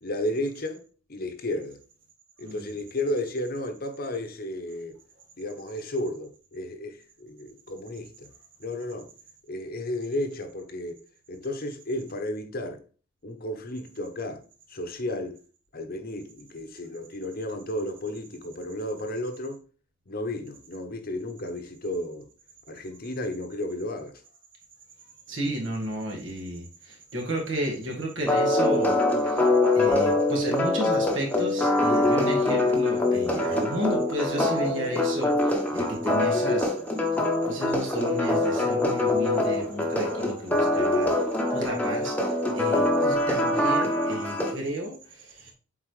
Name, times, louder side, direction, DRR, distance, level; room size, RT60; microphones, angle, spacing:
voice 1, 0.0-0.8 1.1-1.8 2.4-5.0 5.4-8.3 8.6-9.1 9.5-11.0 11.3-12.8 13.2-14.4 14.7-15.4 15.7-19.6 20.1-22.3 22.7-24.2, left 1 dB, 45° left, 0.8 m, -33 dB
voice 2, 25.3-29.0 29.2-36.7 37.5-41.1 41.5-45.5, equal, 65° right, 1.9 m, -33 dB
sound 1, 28.3-44.5, left 2 dB, 5° left, 0.9 m, -24 dB
7.7 x 4.2 x 3.2 m
head